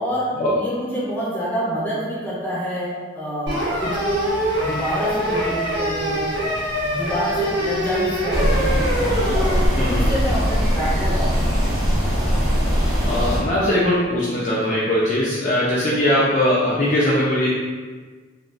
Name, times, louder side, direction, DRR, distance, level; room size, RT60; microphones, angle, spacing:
voice 1, 0.0-6.3 6.8-8.8 9.3-11.7, equal, 10° left, -8 dB, 0.7 m, -27 dB
sound 1, 3.5-9.7, equal, 60° right, 0.8 m, -24 dB
sound 2, 8.3-13.4, equal, 20° right, 0.8 m, -20 dB
voice 2, 9.8-10.1 13.0-17.5, left 1 dB, 35° left, -7 dB, 0.3 m, -20 dB
2.8 x 2.4 x 2.3 m, 1.4 s
head